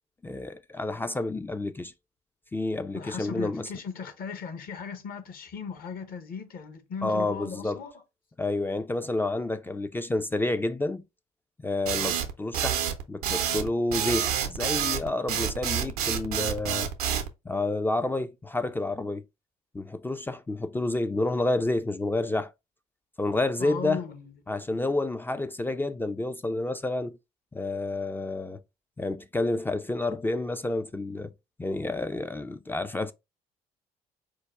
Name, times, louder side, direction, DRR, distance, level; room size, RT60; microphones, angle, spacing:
voice 1, 0.2-1.9 2.5-3.7 7.0-7.8 8.4-11.0 11.6-12.8 13.1-16.9 17.5-19.2 19.7-22.5 23.2-24.0 24.5-27.2 27.5-28.6 29.0-31.3 31.6-33.1, left 2 dB, 10° left, 0.3 m, -29 dB
voice 2, 2.9-7.9 23.6-24.3, left 6 dB, 50° left, 0.8 m, -37 dB
sound 1, 11.9-17.3, right 9 dB, 80° right, 0.6 m, -28 dB
4.6 x 2.2 x 3.3 m
hypercardioid pair, 50°, 19 cm